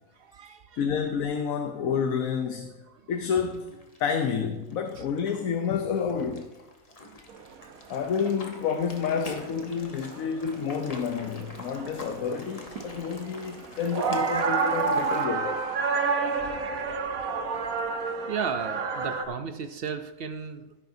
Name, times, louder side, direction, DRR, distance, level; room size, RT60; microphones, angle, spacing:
voice 1, 0.2-0.8 7.0-7.2 17.5-17.9 18.3-20.8, right 6 dB, 60° right, 0.6 m, -35 dB
voice 2, 0.8-2.7 3.1-3.7 4.0-6.5 7.9-15.7 16.9-17.1 18.0-18.3, left 6 dB, 85° left, 1.2 m, -29 dB
sound 1, 3.2-15.2, left 2 dB, 30° left, 1.1 m, -46 dB
sound 2, 7.3-7.4 7.7-7.8 8.0-8.5 8.9-10.3 10.7-19.3, right 5 dB, 85° right, 1.3 m, -29 dB
15.5 x 8.9 x 2.7 m
omnidirectional pair, 1.4 m